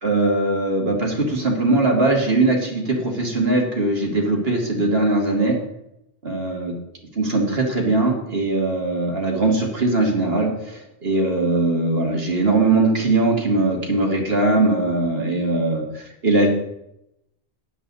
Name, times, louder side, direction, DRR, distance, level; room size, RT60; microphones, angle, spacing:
voice 1, 0.0-5.6 6.2-6.7 7.2-16.5, right 2 dB, 60° right, 0 dB, 2.4 m, -20 dB
12.0 x 9.9 x 4.1 m, 0.84 s
omnidirectional pair, 1.2 m